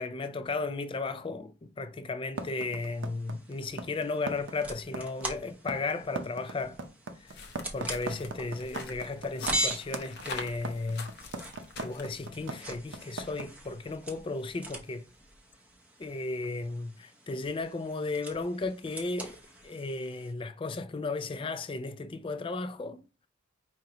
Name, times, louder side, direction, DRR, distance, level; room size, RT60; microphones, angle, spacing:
voice 1, 0.0-6.8 7.2-7.3 7.7-11.1 11.8-15.1 16.0-19.4 19.6-23.0, left 3 dB, 25° left, 0.4 m, -35 dB
sound 1, 2.4-20.3, right 1 dB, 5° right, 0.7 m, -42 dB
sound 2, 2.4-13.4, right 3 dB, 65° right, 0.6 m, -38 dB
sound 3, 7.3-12.3, left 4 dB, 55° left, 0.7 m, -44 dB
5.0 x 2.9 x 2.9 m
head